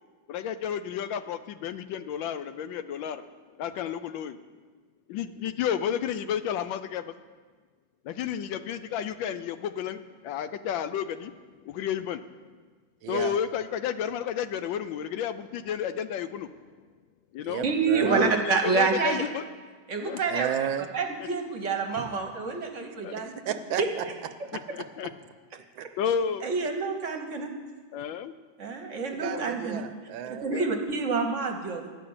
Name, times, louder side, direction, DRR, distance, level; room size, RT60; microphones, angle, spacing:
voice 1, 0.3-3.3 3.6-4.4 5.1-7.1 8.0-11.4 11.6-12.2 13.1-16.5 17.3-17.7 18.0-19.4 20.0-20.2 23.0-23.1 24.7-25.1 26.0-26.5 27.9-28.3 29.3-29.4 30.5-30.6, left 8 dB, 80° left, 12 dB, 1.3 m, -31 dB
voice 2, 13.0-13.3 17.4-18.3 20.3-20.9 22.0-22.1 23.2-24.0 25.5-25.9 29.2-30.4, right 9 dB, 90° right, 9 dB, 1.4 m, -33 dB
voice 3, 17.6-19.3 19.9-23.4 23.8-23.9 26.4-27.5 28.6-29.8 30.3-31.9, right 4 dB, 50° right, 3 dB, 1.1 m, -28 dB
11.5 x 5.8 x 8.7 m, 1.4 s
omnidirectional pair, 2.1 m